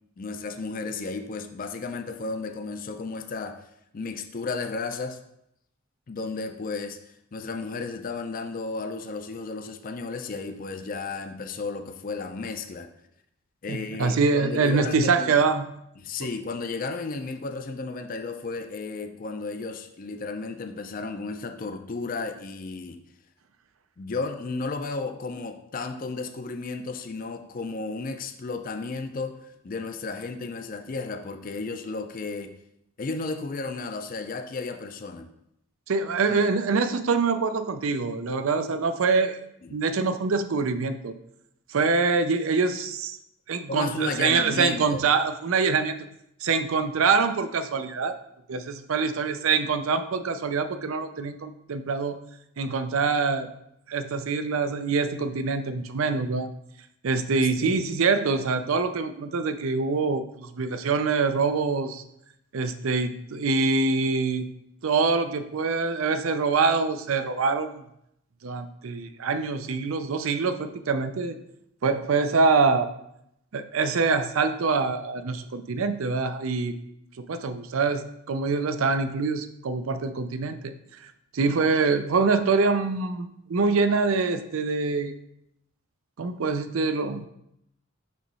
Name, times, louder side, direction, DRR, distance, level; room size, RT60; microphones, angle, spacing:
voice 1, 0.2-3.6 3.9-5.2 6.1-12.9 13.6-15.3 16.0-23.0 24.0-32.5 33.0-35.3 36.3-36.4 39.6-39.7 43.7-45.0 57.4-57.8, left 3 dB, 40° left, 6 dB, 0.5 m, -33 dB
voice 2, 13.7-15.7 35.9-39.4 39.7-41.2 41.7-43.2 43.5-46.0 46.4-48.1 48.5-52.2 52.6-53.5 53.9-56.5 57.0-62.0 62.5-64.5 64.8-67.8 68.4-71.3 71.8-72.9 73.5-76.7 77.3-81.1 81.3-85.1 86.2-87.3, right 4 dB, 80° right, 10 dB, 0.5 m, -25 dB
6.3 x 3.1 x 5.4 m, 0.77 s
head